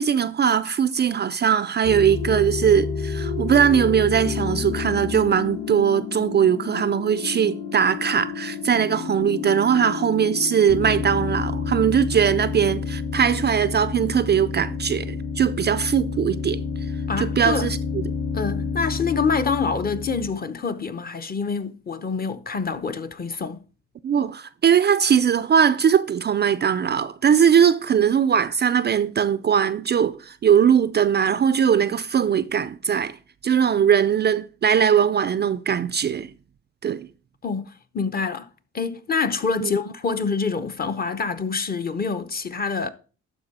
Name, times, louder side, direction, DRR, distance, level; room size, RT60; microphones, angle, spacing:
voice 1, 0.0-16.6 17.2-18.0 24.0-33.2 33.4-36.3 36.8-37.1 39.6-39.7, right 8 dB, 35° right, 0.4 m, -20 dB
sound 1, 1.8-20.3, left 5 dB, 50° left, 2.1 m, -29 dB
voice 2, 17.1-17.7 18.3-23.6 37.4-38.5 38.7-42.9, left 5 dB, 30° left, 0.8 m, -26 dB
11.5 x 4.6 x 4.2 m
cardioid pair, 90°, 30 cm